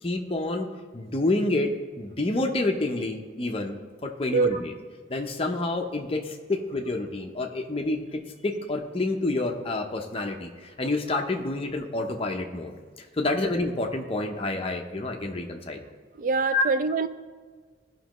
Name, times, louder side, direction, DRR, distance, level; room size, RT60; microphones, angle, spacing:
voice 1, 0.0-1.7 2.0-4.7 5.1-15.8 16.5-16.7, left 2 dB, 30° left, 3 dB, 0.7 m, -28 dB
voice 2, 16.2-17.1, right 4 dB, 45° right, 11 dB, 0.3 m, -24 dB
15.5 x 5.2 x 3.0 m, 1.5 s
head